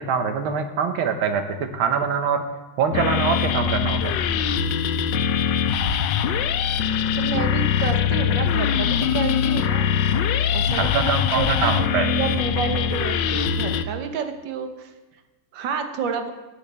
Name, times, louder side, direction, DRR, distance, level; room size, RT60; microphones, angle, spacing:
voice 1, 0.0-1.4 1.7-2.4 2.8-4.3 10.7-12.1, right 6 dB, 85° right, 7 dB, 1.9 m, -24 dB
sound 1, 2.9-13.8, left 8 dB, 70° left, 1.2 m, -22 dB
voice 2, 7.2-10.0 10.5-14.9 15.5-16.3, right 6 dB, 70° right, 7 dB, 1.6 m, -29 dB
8.7 x 7.1 x 8.6 m, 1.2 s
omnidirectional pair, 2.2 m